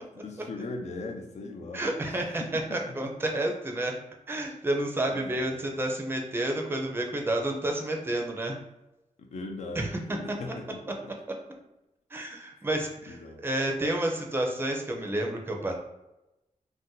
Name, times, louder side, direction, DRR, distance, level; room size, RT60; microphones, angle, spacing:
voice 1, 0.1-3.1 5.1-5.6 9.2-11.1 13.1-13.4, left 2 dB, 60° left, 2 dB, 0.5 m, -40 dB
voice 2, 1.7-3.9 4.3-8.6 9.7-9.9 12.1-15.7, right 1 dB, 15° right, 1 dB, 0.5 m, -30 dB
2.6 x 2.2 x 3.8 m, 0.94 s
wide cardioid pair, 125°, 13 cm